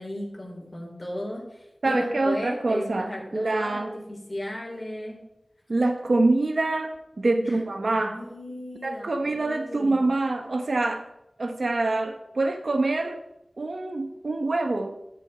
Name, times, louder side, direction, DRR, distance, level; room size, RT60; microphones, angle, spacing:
voice 1, 0.0-5.2 7.4-10.0, left 1 dB, 40° left, 4.0 m, -36 dB
voice 2, 1.8-3.9 5.7-8.2 8.8-11.1 11.4-13.2 13.6-14.9, right 2 dB, 70° right, 1.0 m, -25 dB
13.5 x 7.6 x 4.4 m
wide cardioid pair, 45°, 0 cm